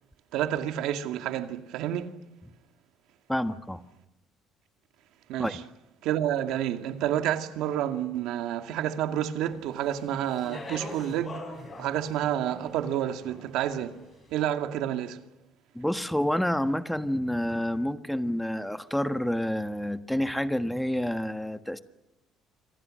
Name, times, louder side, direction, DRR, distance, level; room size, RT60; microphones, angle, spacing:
voice 1, 0.3-2.1 5.3-5.6 6.0-11.4 11.8-14.0 14.3-15.2, right 11 dB, 80° right, 2.2 m, -29 dB
voice 2, 3.3-3.8 5.4-5.6 15.7-21.8, equal, 5° left, 1.4 m, -28 dB
Speech, 9.7-14.1, left 2 dB, 30° left, 7.1 m, -43 dB
29.0 x 26.5 x 6.6 m
cardioid pair, 125°, 0 cm